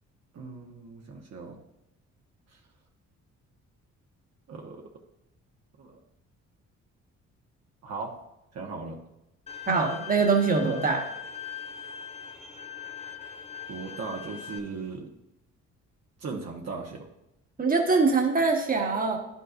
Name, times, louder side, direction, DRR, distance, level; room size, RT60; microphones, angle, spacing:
voice 1, 0.3-1.6 4.5-4.8 5.8-6.0 7.8-8.2 8.5-9.0 13.7-15.1 16.2-17.1, right 4 dB, 55° right, 0 dB, 1.2 m, -37 dB
Bowed string instrument, 9.5-14.6, left 7 dB, 20° left, 0.7 m, -41 dB
voice 2, 9.7-11.1 17.6-19.2, right 4 dB, 30° right, 2 dB, 1.4 m, -23 dB
11.0 x 5.5 x 2.5 m, 0.85 s
cardioid pair, 90°, 30 cm